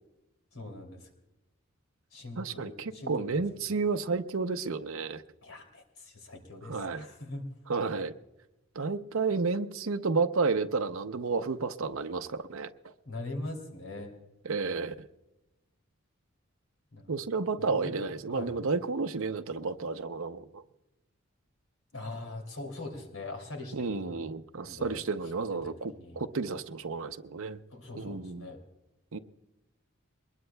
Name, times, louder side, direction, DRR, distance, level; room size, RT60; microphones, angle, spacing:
voice 1, 0.5-1.1 2.1-3.4 5.4-7.5 13.0-14.1 16.9-17.1 17.6-18.1 18.3-18.5 21.9-24.2 24.7-25.0 25.5-26.2 27.7-28.6, left 2 dB, 85° left, 2.8 m, -42 dB
voice 2, 2.4-5.2 6.7-7.0 7.7-8.1 8.8-12.9 14.4-15.1 17.1-20.6 23.7-27.6 27.9-28.5 29.1-29.2, right 4 dB, 75° right, 0.6 m, -31 dB
22.5 x 20.5 x 2.3 m
head